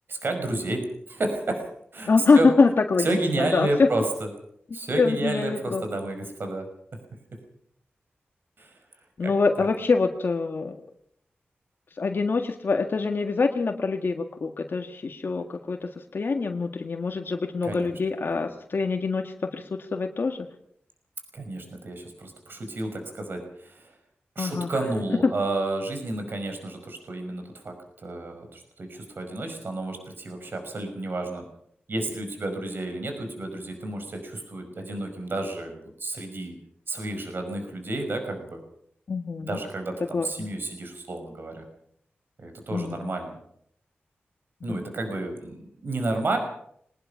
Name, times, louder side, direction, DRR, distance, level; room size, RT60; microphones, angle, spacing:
voice 1, 0.1-2.1 2.3-2.5 3.0-4.3 4.7-6.7 8.6-8.8 9.2-9.3 9.6-9.7 17.6-17.9 18.3-18.4 21.3-24.0 24.4-31.4 31.9-36.6 36.9-38.6 39.4-41.6 42.4-43.3 44.6-46.4, right 2 dB, 60° right, 5 dB, 5.5 m, -31 dB
voice 2, 2.1-3.1 3.4-3.9 4.7-5.8 9.2-10.8 12.0-20.5 24.4-24.7 25.2-25.3 39.1-39.6 40.1-40.3 42.7-43.1 44.7-44.8, left 4 dB, 60° left, 4 dB, 1.8 m, -24 dB
22.5 x 20.0 x 5.9 m, 0.69 s
wide cardioid pair, 110°, 4 cm